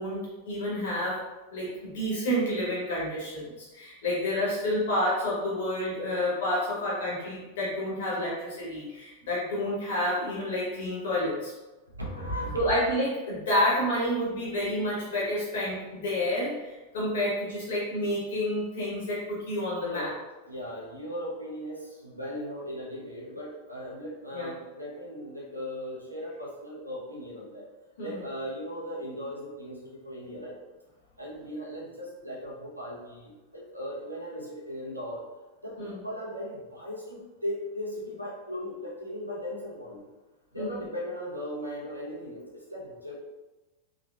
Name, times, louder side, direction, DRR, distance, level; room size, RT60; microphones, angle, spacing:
voice 1, 0.0-11.5 12.5-20.1 24.3-24.5 28.0-28.3 35.8-36.0 40.5-40.8, left 1 dB, 55° left, -6 dB, 1.4 m, -29 dB
voice 2, 12.0-12.6 19.8-20.2 20.4-27.7 28.0-30.6 31.2-35.2 35.6-40.1 40.5-43.2, equal, 85° right, -4 dB, 0.9 m, -38 dB
3.7 x 3.2 x 2.5 m, 1.1 s
figure-of-eight pair, 90°, 0 cm